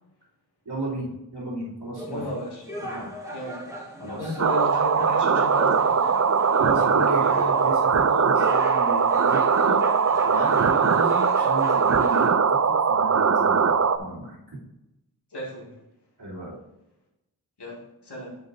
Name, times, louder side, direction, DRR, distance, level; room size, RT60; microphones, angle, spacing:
voice 1, 0.6-2.2 2.8-3.1 4.0-4.4 6.6-9.8 10.2-14.6 16.2-16.6, right 2 dB, 80° right, -7 dB, 3.0 m, -33 dB
sound 1, 1.9-12.3, right 1 dB, 10° right, 2.4 m, -36 dB
voice 2, 2.1-2.6 3.3-3.6 4.2-6.1 15.3-15.8 17.6-18.4, left 1 dB, 85° left, -3 dB, 2.3 m, -34 dB
sound 2, 4.4-14.0, right 6 dB, 40° right, 0.5 m, -21 dB
9.9 x 6.9 x 2.7 m, 0.91 s
wide cardioid pair, 55°, 39 cm